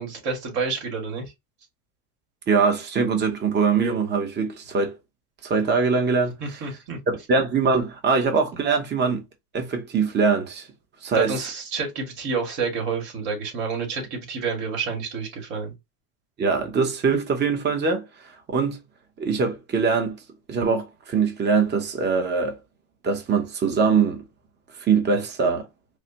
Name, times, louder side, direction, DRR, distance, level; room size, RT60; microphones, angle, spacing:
voice 1, 0.0-1.3 6.4-7.0 11.1-15.7, right 4 dB, 60° right, 2.2 m, -29 dB
voice 2, 2.5-5.0 5.4-6.3 7.1-9.2 9.5-10.7 11.0-11.3 16.4-18.0 18.5-18.8 19.2-20.2 20.5-22.6 23.0-24.2 24.9-25.7, right 5 dB, 20° right, 0.8 m, -22 dB
4.9 x 2.1 x 2.9 m
supercardioid pair, 110°, 47 cm